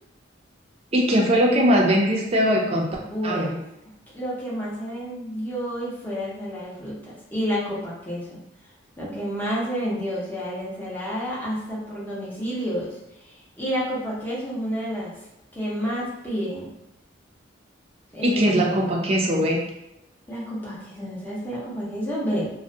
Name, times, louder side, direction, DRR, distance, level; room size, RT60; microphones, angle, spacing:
voice 1, 0.9-2.9 3.2-3.6 18.2-19.6, equal, 35° right, -1 dB, 0.4 m, -20 dB
voice 2, 3.0-3.6 4.1-8.4 9.0-15.2 15.5-16.7 18.1-18.6 20.3-22.5, equal, 10° left, -7 dB, 0.6 m, -30 dB
2.3 x 2.1 x 2.6 m, 0.89 s
head